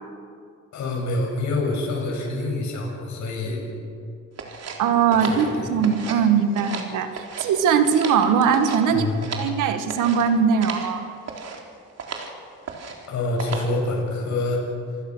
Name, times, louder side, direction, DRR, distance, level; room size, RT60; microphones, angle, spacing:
voice 1, 0.7-3.6 5.1-5.7 8.9-9.2 13.1-14.6, left 2 dB, 70° left, 0 dB, 7.8 m, -26 dB
sound 1, 4.4-6.3 6.5-7.5 7.8-9.6 9.9-10.2 10.6-10.9 11.2-11.6 12.0-12.3 12.6-13.1 13.4-13.8, right 5 dB, 55° right, 3.9 m, -34 dB
voice 2, 4.8-9.1 9.4-11.1, right 7 dB, 90° right, 8 dB, 2.0 m, -20 dB
27.5 x 20.0 x 6.5 m, 2.3 s
cardioid pair, 90°, 30 cm